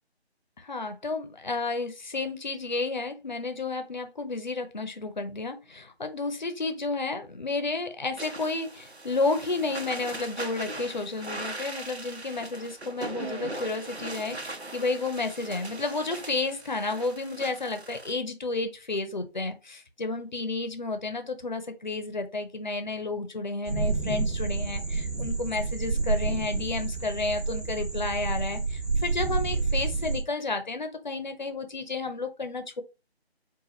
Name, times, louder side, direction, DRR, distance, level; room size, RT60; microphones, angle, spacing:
voice 1, 0.6-32.8, left 3 dB, 45° left, 7 dB, 0.7 m, -31 dB
sound 1, 8.2-18.1, right 2 dB, 80° right, 1.0 m, -40 dB
sound 2, 23.6-30.2, right 4 dB, 35° right, 1.6 m, -29 dB
5.0 x 2.4 x 3.9 m, 0.28 s
figure-of-eight pair, 160°, 32 cm